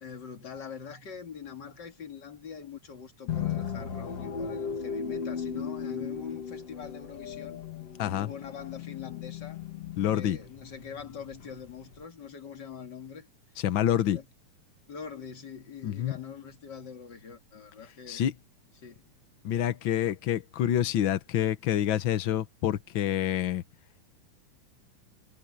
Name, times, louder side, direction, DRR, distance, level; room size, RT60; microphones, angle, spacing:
voice 1, 0.0-7.6 8.1-9.6 10.1-13.3 14.0-14.3 14.9-18.3 18.8-19.1 20.0-20.2, left 7 dB, 35° left, 2.5 m, -43 dB
sound 1, 3.3-12.0, left 7 dB, 55° left, 3.2 m, -37 dB
voice 2, 8.0-8.3 10.0-10.4 13.6-14.2 15.8-16.1 18.1-18.3 19.4-23.6, left 11 dB, 90° left, 1.0 m, -27 dB
omnidirectional pair, 3.6 m